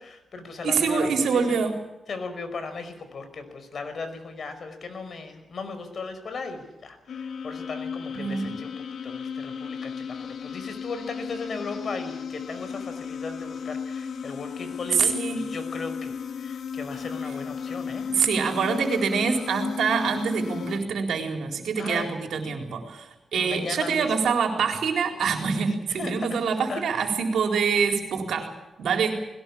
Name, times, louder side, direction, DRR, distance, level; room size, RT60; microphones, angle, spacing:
voice 1, 0.0-1.6 2.1-8.7 9.0-18.1 21.8-22.1 23.3-24.1 26.0-26.4 26.7-27.1, left 4 dB, 60° left, 8 dB, 5.2 m, -37 dB
voice 2, 0.6-1.8 8.1-8.6 14.9-15.5 18.1-29.2, right 5 dB, 85° right, 4 dB, 4.1 m, -25 dB
sound 1, 7.1-20.8, left 6 dB, 80° left, 2.0 m, -35 dB
21.0 x 18.0 x 8.6 m, 0.98 s
cardioid pair, 90°, 0 cm